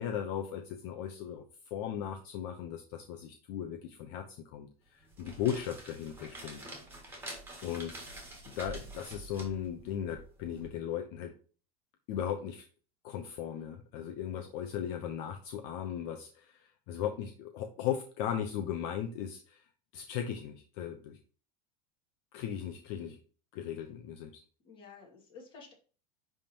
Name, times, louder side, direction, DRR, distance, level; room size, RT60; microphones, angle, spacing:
voice 1, 0.0-1.4 1.7-6.6 7.6-7.9 8.5-11.3 12.1-12.6 13.0-19.6 19.9-21.2 22.3-23.2 23.5-24.4, left 9 dB, 55° left, 5 dB, 0.8 m, -37 dB
sound 1, 5.0-10.7, right 2 dB, 10° right, 1.9 m, -47 dB
voice 2, 24.6-25.7, left 5 dB, 25° left, -1 dB, 2.2 m, -52 dB
10.5 x 3.6 x 2.9 m, 0.40 s
supercardioid pair, 150°, 20 cm